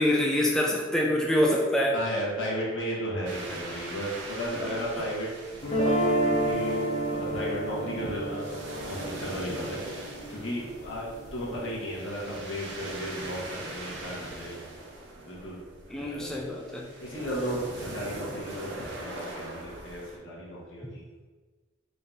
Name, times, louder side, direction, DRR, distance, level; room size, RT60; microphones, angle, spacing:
voice 1, 0.0-2.0 15.9-16.8, left 1 dB, 5° left, -2 dB, 0.4 m, -25 dB
voice 2, 1.9-14.6 15.2-15.6 15.9-16.5 17.0-21.0, equal, 90° left, -5 dB, 1.2 m, -35 dB
sound 1, 3.2-20.2, right 1 dB, 60° right, 0.6 m, -41 dB
sound 2, 5.6-11.7, right 1 dB, 35° left, 0.8 m, -30 dB
3.8 x 2.7 x 3.5 m, 1.4 s
head